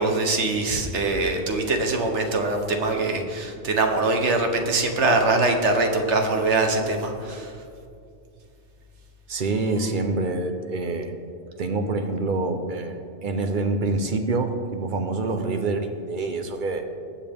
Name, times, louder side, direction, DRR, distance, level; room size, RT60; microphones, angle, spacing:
voice 1, 0.0-7.5, right 3 dB, 85° right, 4 dB, 1.5 m, -23 dB
voice 2, 9.3-11.1 11.6-12.9 13.2-16.9, right 3 dB, 50° right, 6 dB, 1.0 m, -26 dB
19.0 x 7.2 x 3.6 m, 2.4 s
omnidirectional pair, 1.2 m